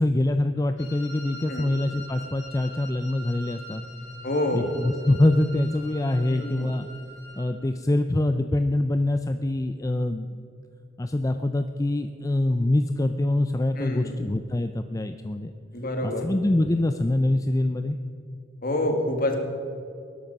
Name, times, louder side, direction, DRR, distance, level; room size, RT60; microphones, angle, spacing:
voice 1, 0.0-3.8 4.5-6.9 7.3-10.3 11.0-15.5 16.0-18.0, left 1 dB, 15° left, 8 dB, 0.4 m, -24 dB
Wind instrument woodwind instrument, 0.8-7.5, equal, 60° left, 3.7 m, -44 dB
voice 2, 4.2-4.7 6.3-6.7 13.8-14.2 15.7-16.3 18.6-19.4, left 1 dB, 45° left, 4 dB, 2.1 m, -27 dB
20.0 x 11.5 x 5.3 m, 2.6 s
head